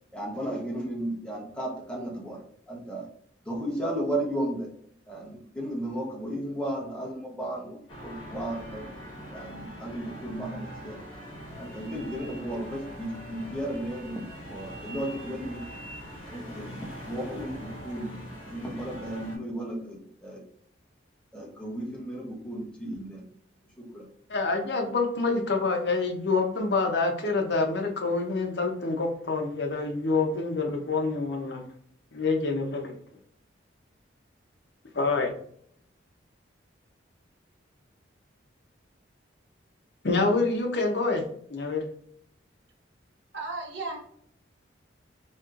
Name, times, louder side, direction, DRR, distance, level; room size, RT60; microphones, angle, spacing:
voice 1, 0.1-2.4 2.7-3.1 3.5-4.7 5.1-8.9 9.3-11.0 11.6-14.2 14.4-15.6 16.3-16.8 17.1-18.2 18.5-20.4 21.3-23.2 23.8-24.1, right 1 dB, 5° left, -3 dB, 0.8 m, -34 dB
sound 1, 7.9-19.4, equal, 25° left, 1.2 m, -42 dB
voice 2, 24.3-31.6 32.1-32.9 34.9-35.3 40.0-41.2 41.5-41.8, left 3 dB, 60° left, 3 dB, 0.7 m, -26 dB
voice 3, 43.3-44.0, right 3 dB, 70° right, 0 dB, 1.0 m, -34 dB
4.2 x 2.9 x 2.4 m, 0.64 s
head